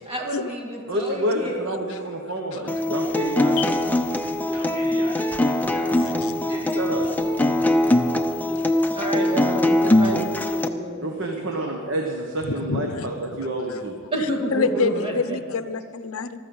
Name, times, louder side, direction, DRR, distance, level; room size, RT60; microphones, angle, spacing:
voice 1, 0.1-1.6 7.8-8.0 8.9-10.3 10.6-11.1 14.1-15.4, right 1 dB, 25° right, -1 dB, 2.1 m, -29 dB
voice 2, 0.9-3.7 6.8-7.1 11.0-14.0, right 1 dB, 60° right, 2 dB, 1.2 m, -28 dB
Acoustic guitar, 2.7-10.7, left 1 dB, 10° left, 0.5 m, -22 dB
voice 3, 4.3-6.8 11.1-11.8, equal, 90° right, -2 dB, 3.4 m, -41 dB
voice 4, 12.4-13.8 14.5-16.5, left 4 dB, 65° left, 12 dB, 0.6 m, -27 dB
14.5 x 13.5 x 5.5 m, 2.1 s
head